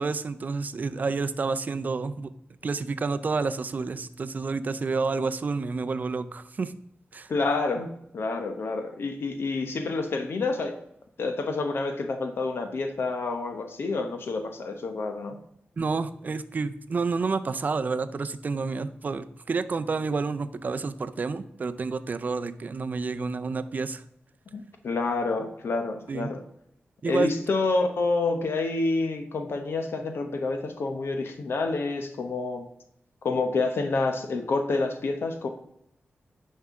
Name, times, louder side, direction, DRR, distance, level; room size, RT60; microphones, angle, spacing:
voice 1, 0.0-2.3 2.6-6.7 7.1-7.3 15.8-24.0 26.1-26.3 27.0-27.3, right 4 dB, 45° right, 12 dB, 0.5 m, -29 dB
voice 2, 7.3-10.7 11.2-15.4 24.5-26.4 27.1-32.7 33.2-35.5, left 3 dB, 70° left, 5 dB, 0.8 m, -28 dB
9.5 x 5.5 x 3.6 m, 0.76 s
wide cardioid pair, 120°, 4 cm